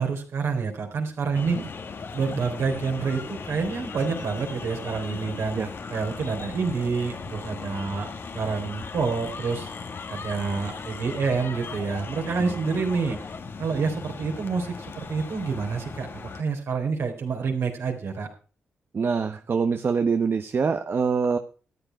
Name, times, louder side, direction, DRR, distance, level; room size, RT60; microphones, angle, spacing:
voice 1, 0.0-1.6 2.1-5.6 5.9-9.7 10.1-13.2 13.6-18.3, right 5 dB, 70° right, 2 dB, 3.8 m, -28 dB
sound 1, 1.3-16.4, left 5 dB, 55° left, 1.5 m, -37 dB
voice 2, 18.9-21.4, right 5 dB, 55° right, 7 dB, 1.0 m, -25 dB
13.5 x 9.1 x 4.7 m, 0.38 s
supercardioid pair, 50°, 5 cm